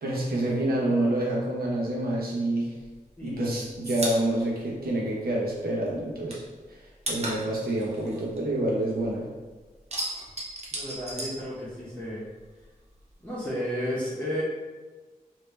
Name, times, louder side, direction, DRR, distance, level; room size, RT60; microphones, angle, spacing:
voice 1, 0.0-2.7 3.2-6.4 6.7-6.8 7.1-9.2, right 1 dB, 85° right, -4 dB, 0.9 m, -27 dB
sound 1, 2.8-5.6 5.9-9.2 9.5-12.1 12.4-13.5, right 1 dB, 45° right, 0.9 m, -36 dB
voice 2, 3.2-3.6 10.7-12.2 13.2-14.4, equal, 10° left, -10 dB, 1.2 m, -33 dB
3.2 x 2.8 x 3.2 m, 1.3 s
cardioid pair, 45°, 15 cm